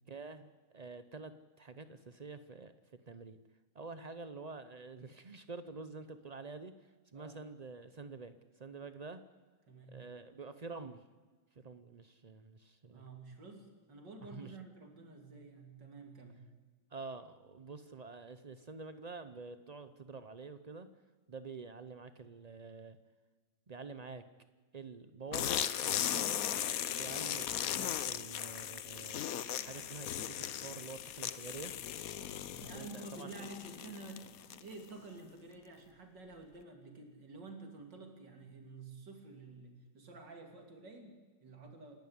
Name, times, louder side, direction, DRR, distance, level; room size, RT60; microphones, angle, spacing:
voice 1, 0.1-0.5 0.7-3.4 3.7-9.2 9.9-11.0 11.5-13.1 14.2-14.6 16.9-20.9 21.3-23.0 23.7-24.2 24.7-26.5 26.9-29.2 29.6-31.7 32.6-33.5, right 4 dB, 85° right, 11 dB, 0.3 m, -48 dB
voice 2, 7.1-7.5 9.7-10.0 12.9-16.4 26.0-26.3 32.4-34.3 34.6-41.9, right 3 dB, 65° right, 4 dB, 3.7 m, -50 dB
sound 1, 25.3-34.8, left 10 dB, 60° left, 1.0 m, -37 dB
27.5 x 12.0 x 9.6 m, 1.4 s
omnidirectional pair, 2.0 m